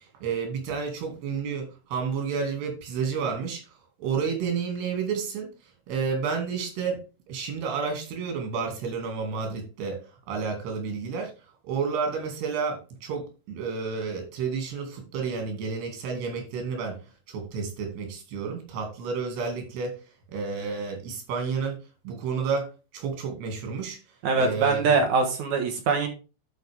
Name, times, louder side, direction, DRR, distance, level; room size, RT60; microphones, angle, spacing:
voice 1, 0.2-1.7 1.9-3.6 4.0-5.5 5.9-7.0 7.3-10.0 10.3-11.3 11.7-17.0 17.3-19.9 20.3-21.8 22.1-22.7 22.9-24.0 24.4-24.8, right 5 dB, 85° right, 3 dB, 4.4 m, -30 dB
voice 2, 24.2-26.1, right 4 dB, 65° right, 5 dB, 2.2 m, -23 dB
12.0 x 5.3 x 3.5 m, 0.32 s
omnidirectional pair, 4.6 m